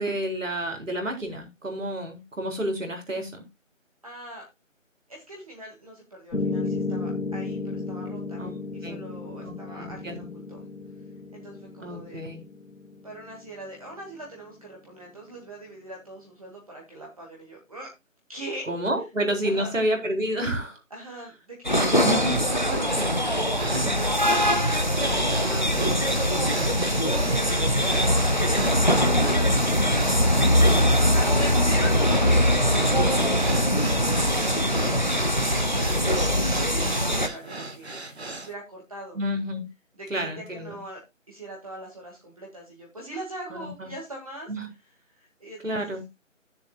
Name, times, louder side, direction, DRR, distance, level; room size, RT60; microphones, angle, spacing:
voice 1, 0.0-3.4 8.4-8.5 8.8-9.0 9.4-10.3 11.8-12.4 18.7-20.8 21.9-22.4 22.7-23.1 23.7-24.0 25.4-25.9 39.1-39.6 40.1-40.8 43.5-43.9 44.5-44.6 45.6-46.0, right 1 dB, 70° right, 3 dB, 3.8 m, -30 dB
voice 2, 4.0-4.4 5.1-10.6 11.3-12.2 13.0-17.9 18.3-18.7 19.4-19.7 20.9-22.2 22.5-23.3 24.7-26.8 27.1-28.9 29.1-39.2 40.0-41.0 41.3-44.5 45.1-46.0, right 1 dB, 25° right, -2 dB, 2.0 m, -42 dB
Piano, 6.3-14.4, left 3 dB, 80° left, 1.5 m, -34 dB
sound 1, 21.6-37.3, equal, 35° left, 0.6 m, -22 dB
sound 2, 21.9-38.5, right 2 dB, 55° right, 1.7 m, -37 dB
14.5 x 6.9 x 2.3 m, 0.22 s
figure-of-eight pair, 170°, 39 cm